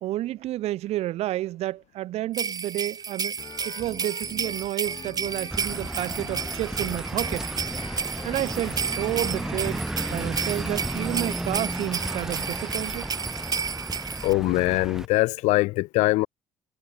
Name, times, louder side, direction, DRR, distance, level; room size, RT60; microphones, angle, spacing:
voice 1, 0.0-3.4 3.6-7.5 8.2-9.8 10.1-13.1, right 15 dB, 65° right, 0.5 m, -30 dB
sound 1, 2.3-14.3, right 6 dB, 35° right, 1.7 m, -32 dB
sound 2, 3.3-9.5, left 6 dB, 35° left, 4.7 m, -44 dB
sound 3, 5.5-15.1, right 1 dB, 5° right, 0.4 m, -33 dB
voice 2, 14.2-16.3, left 20 dB, 85° left, 0.5 m, -22 dB
cardioid pair, 105°, 11 cm